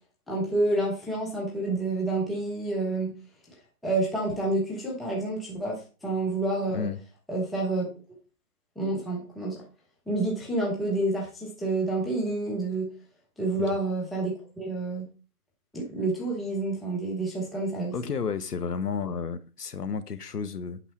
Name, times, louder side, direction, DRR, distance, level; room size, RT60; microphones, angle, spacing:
voice 1, 0.3-3.1 3.8-6.9 7.3-7.9 8.8-9.6 10.1-12.9 13.4-15.1 15.7-17.9, right 2 dB, ahead, 0.5 m, -28 dB
voice 2, 17.9-20.8, left 6 dB, 90° left, 1.2 m, -32 dB
8.3 x 6.1 x 3.9 m
hypercardioid pair, 165°, 45 cm